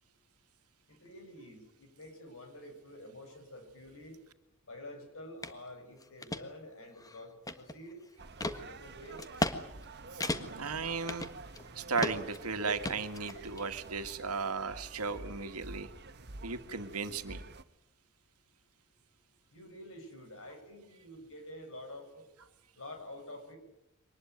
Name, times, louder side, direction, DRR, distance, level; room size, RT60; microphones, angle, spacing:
voice 1, 0.9-4.2 4.7-8.0 8.4-9.2 19.5-22.1 22.8-23.6, left 1 dB, 65° left, 6 dB, 6.9 m, -48 dB
sound 1, 5.4-5.6 6.0-6.4 7.0-7.9 8.4-8.6 9.2-9.6 9.8-9.9 10.2-10.7 11.1-11.7 12.0-12.4 12.8-13.6, left 2 dB, 15° left, 1.5 m, -35 dB
sound 2, 8.2-17.6, right 3 dB, 50° right, 1.3 m, -48 dB
voice 2, 10.1-11.3 11.8-15.9 16.4-17.4, right 4 dB, 80° right, 8 dB, 1.9 m, -36 dB
24.0 x 20.0 x 9.3 m, 0.84 s
head